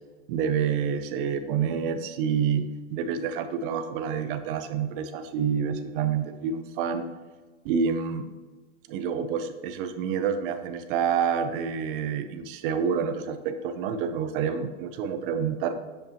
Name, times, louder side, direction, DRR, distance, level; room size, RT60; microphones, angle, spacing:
voice 1, 0.3-7.1 7.6-8.2 8.9-15.7, right 7 dB, 50° right, 9 dB, 0.7 m, -28 dB
8.1 x 6.8 x 2.8 m, 1.3 s
supercardioid pair, 150°, 35 cm